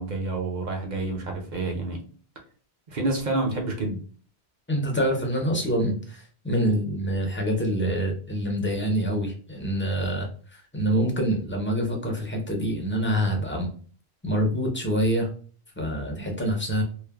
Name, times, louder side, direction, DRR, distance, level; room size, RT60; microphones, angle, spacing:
voice 1, 0.0-2.0 2.9-4.0, right 2 dB, 50° right, 2 dB, 0.7 m, -28 dB
voice 2, 4.7-13.7 14.2-15.3 15.8-16.8, equal, 15° left, 0 dB, 0.4 m, -26 dB
3.1 x 2.1 x 2.2 m, 0.42 s
omnidirectional pair, 1.1 m